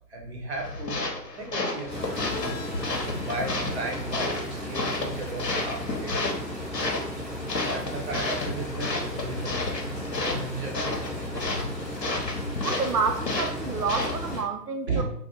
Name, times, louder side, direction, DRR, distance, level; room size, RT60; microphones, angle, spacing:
voice 1, 0.1-1.0 1.4-2.5 3.0-6.5 7.7-11.5 14.9-15.0, right 3 dB, 40° right, -1 dB, 0.8 m, -35 dB
sound 1, 0.6-14.5, left 2 dB, 75° left, 0.9 m, -32 dB
sound 2, 1.8-7.2 7.4-7.8 9.0-9.1, left 2 dB, 45° left, 0.8 m, -43 dB
sound 3, 1.9-14.4, equal, 5° left, 0.7 m, -36 dB
voice 2, 12.6-15.0, right 5 dB, 65° right, 6 dB, 0.6 m, -29 dB
2.4 x 2.3 x 4.0 m, 0.68 s
figure-of-eight pair, 135°, 50 cm